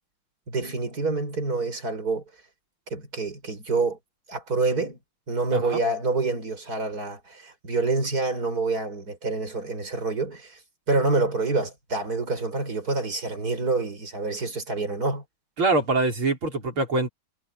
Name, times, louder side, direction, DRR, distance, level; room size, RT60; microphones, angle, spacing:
voice 1, 0.5-2.2 2.9-4.0 4.3-5.0 5.3-10.6 10.9-15.2, right 3 dB, 45° right, 6.4 m, -27 dB
voice 2, 5.5-5.8 15.6-17.1, right 3 dB, 90° right, 6.1 m, -24 dB
omnidirectional pair, 2.2 m